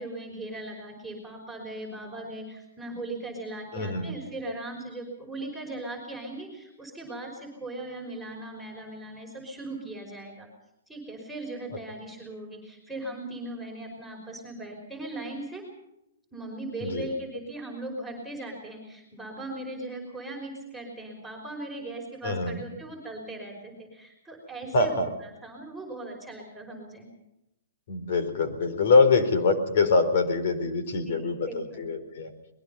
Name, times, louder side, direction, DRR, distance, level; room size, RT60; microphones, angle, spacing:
voice 1, 0.0-10.5 10.9-15.6 16.3-27.1 31.0-31.8, right 2 dB, ahead, -3 dB, 5.4 m, -38 dB
voice 2, 3.7-4.2 16.8-17.1 22.2-22.6 24.7-25.1 27.9-32.3, left 4 dB, 60° left, 9 dB, 4.4 m, -24 dB
23.5 x 21.5 x 5.6 m, 0.86 s
hypercardioid pair, 150°, 0 cm